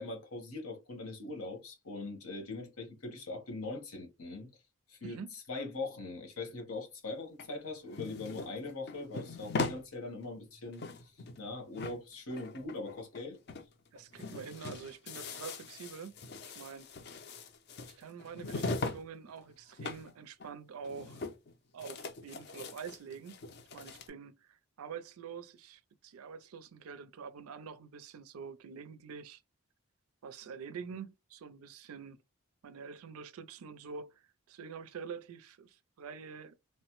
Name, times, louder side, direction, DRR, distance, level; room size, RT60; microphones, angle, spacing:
voice 1, 0.0-4.5 4.9-5.2 5.5-10.8 11.4-13.4, left 2 dB, 90° left, 1.1 m, -41 dB
sound 1, 7.4-9.8 10.2-10.3 10.6-11.5 11.8-13.2 13.5-13.7 14.0-19.0 19.3-20.1 20.4-20.5 20.8-21.5 21.8-24.1, left 3 dB, 50° left, 0.4 m, -40 dB
voice 2, 13.9-16.2 16.6-16.9 17.9-21.2 21.7-23.4 23.7-29.4 30.2-32.2 32.6-36.6, right 6 dB, 85° right, 0.4 m, -46 dB
3.1 x 2.0 x 3.0 m
head